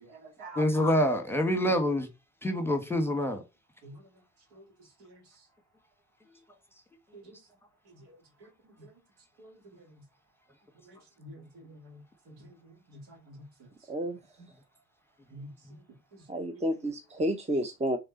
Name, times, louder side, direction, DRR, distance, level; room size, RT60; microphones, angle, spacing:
voice 1, 0.0-0.8 3.8-4.0 4.5-4.6 5.0-5.2 7.1-7.2 8.4-8.5 8.8-8.9 9.4-9.8 10.9-12.4 12.6-13.4 15.3-15.5, right 1 dB, 60° right, 2.7 m, -48 dB
voice 2, 0.6-2.1 2.4-3.4, equal, 5° left, 1.6 m, -26 dB
voice 3, 16.3-18.0, equal, 15° right, 1.0 m, -30 dB
6.4 x 3.7 x 4.2 m
hypercardioid pair, 50°, 43 cm